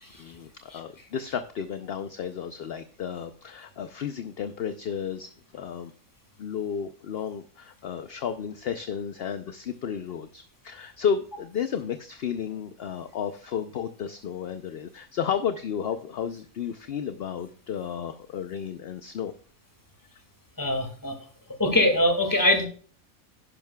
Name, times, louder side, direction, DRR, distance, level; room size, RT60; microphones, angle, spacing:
voice 1, 0.2-5.9 6.4-19.3, left 7 dB, 55° left, 10 dB, 0.7 m, -32 dB
voice 2, 20.6-21.1 21.6-22.7, left 1 dB, 15° left, 5 dB, 2.0 m, -23 dB
11.0 x 10.5 x 2.3 m, 0.42 s
omnidirectional pair, 1.5 m